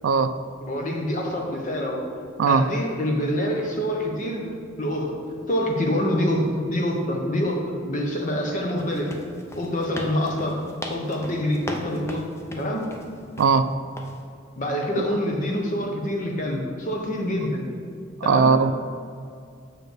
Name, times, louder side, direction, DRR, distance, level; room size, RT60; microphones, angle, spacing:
voice 1, 0.0-0.4 2.4-2.7 13.4-13.7 15.0-15.2 18.2-18.7, right 5 dB, 75° right, 11 dB, 0.3 m, -19 dB
voice 2, 0.6-2.1 2.5-4.5 4.8-9.2 9.5-12.3 12.6-12.9 14.6-17.6 18.2-18.5, equal, 40° left, 0 dB, 1.0 m, -26 dB
sound 1, 8.8-13.6 14.0-14.2, left 1 dB, 15° left, 0.5 m, -38 dB
6.5 x 6.3 x 3.3 m, 2.3 s
head